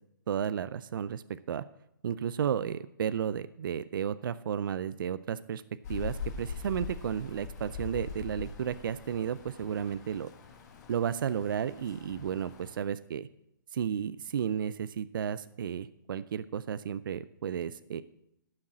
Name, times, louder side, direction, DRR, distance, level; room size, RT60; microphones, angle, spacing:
voice 1, 0.3-1.6 2.0-5.6 5.9-10.3 10.9-13.3 13.7-18.0, right 8 dB, 70° right, 14 dB, 0.5 m, -33 dB
Rain, 5.8-12.8, left 6 dB, 50° left, 1.5 m, -43 dB
11.5 x 6.4 x 7.4 m, 0.81 s
hypercardioid pair, 140°, 11 cm